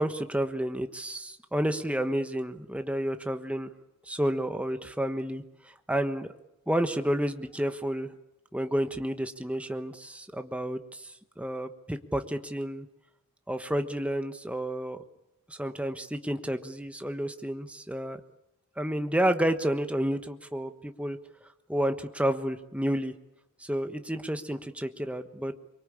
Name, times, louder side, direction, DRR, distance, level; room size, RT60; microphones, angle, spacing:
voice 1, 0.0-3.7 4.1-5.4 5.9-6.3 6.7-8.1 8.5-11.0 11.4-12.9 13.5-15.0 15.5-18.2 18.8-21.2 21.7-23.1 23.6-25.5, right 1 dB, 5° right, 8 dB, 1.2 m, -30 dB
24.5 x 23.5 x 8.6 m, 0.88 s
head